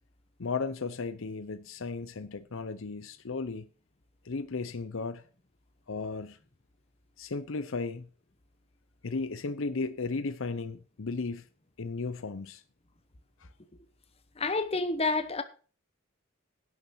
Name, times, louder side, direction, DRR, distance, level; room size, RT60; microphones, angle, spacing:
voice 1, 0.4-3.7 4.2-5.2 5.9-6.4 7.2-8.1 9.0-11.4 11.8-12.6 13.4-13.5, left 4 dB, 60° left, 0.7 m, -35 dB
voice 2, 14.4-15.4, left 3 dB, 30° left, 1.0 m, -29 dB
11.0 x 6.8 x 6.2 m
head